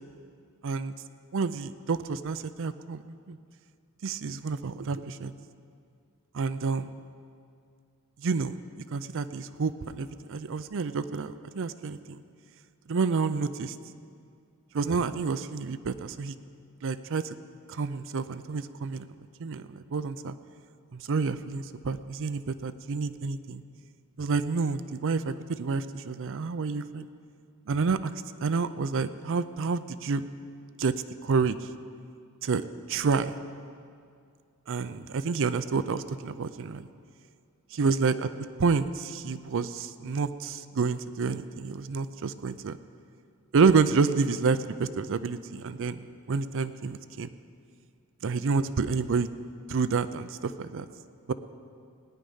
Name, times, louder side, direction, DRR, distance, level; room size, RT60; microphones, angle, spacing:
voice 1, 1.3-3.4 4.0-5.3 6.3-7.0 8.2-8.6 8.9-12.2 12.9-13.8 14.7-16.3 16.8-17.4 17.7-19.1 19.4-20.3 20.9-23.6 24.2-27.1 27.7-28.1 28.4-30.2 30.8-30.9 31.2-31.6 32.4-33.4 34.7-36.9 37.8-38.3 38.6-42.8 43.5-47.3 48.2-49.3 49.7-50.9 51.3-51.4, right 4 dB, 60° right, 13 dB, 0.5 m, -29 dB
18.5 x 10.0 x 5.6 m, 2.3 s
head